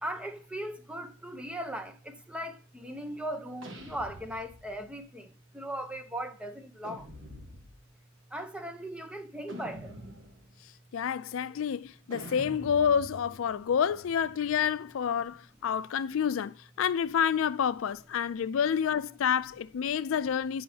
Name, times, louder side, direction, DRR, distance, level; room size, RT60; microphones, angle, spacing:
voice 1, 0.0-7.1 8.3-10.0, right 1 dB, 5° right, 0.7 m, -38 dB
sound 1, 3.6-4.9 6.8-7.9 9.5-10.5 12.1-14.8, right 1 dB, 65° right, 1.4 m, -46 dB
voice 2, 10.9-20.6, left 8 dB, 75° left, 0.4 m, -28 dB
9.3 x 5.5 x 2.8 m
head